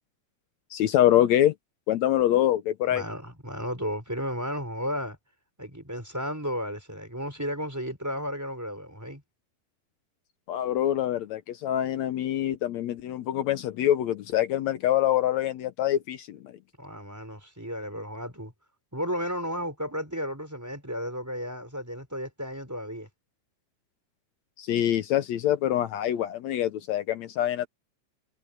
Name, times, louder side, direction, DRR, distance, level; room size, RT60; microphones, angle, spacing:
voice 1, 0.7-1.5 1.9-3.0 10.5-16.6 24.6-27.7, left 12 dB, 70° left, 1.8 m, -25 dB
voice 2, 2.9-5.2 5.6-9.2 16.8-18.5 18.9-23.1, equal, 5° right, 4.0 m, -33 dB
omnidirectional pair, 3.8 m